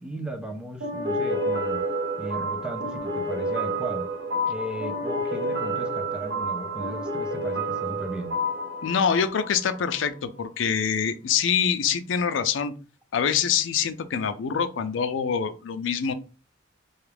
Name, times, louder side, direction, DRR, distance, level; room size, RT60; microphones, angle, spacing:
voice 1, 0.0-1.8 2.2-4.1 4.5-8.3, right 1 dB, 5° right, 0.5 m, -36 dB
sound 1, 0.8-10.1, right 1 dB, 65° right, 0.7 m, -29 dB
voice 2, 8.8-12.7 13.1-16.1, left 7 dB, 75° left, 0.4 m, -25 dB
3.4 x 2.3 x 3.3 m
head